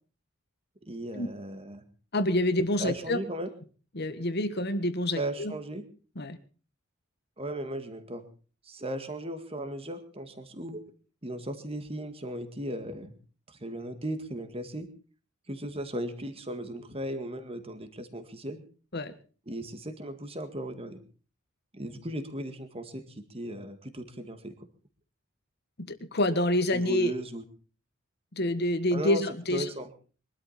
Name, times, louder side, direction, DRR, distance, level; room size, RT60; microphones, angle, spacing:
voice 1, 0.9-1.8 2.8-3.5 5.2-5.9 7.4-8.2 8.7-10.8 11.2-13.1 13.5-14.9 15.5-18.6 19.5-21.0 21.7-24.7 26.7-27.4 28.9-29.2 29.5-29.9, right 1 dB, 30° right, 9 dB, 2.0 m, -36 dB
voice 2, 2.1-3.2 3.9-5.6 6.1-6.4 18.9-19.1 25.9-27.1 28.3-29.7, left 1 dB, 50° left, 11 dB, 1.5 m, -27 dB
23.0 x 12.5 x 4.3 m, 0.38 s
head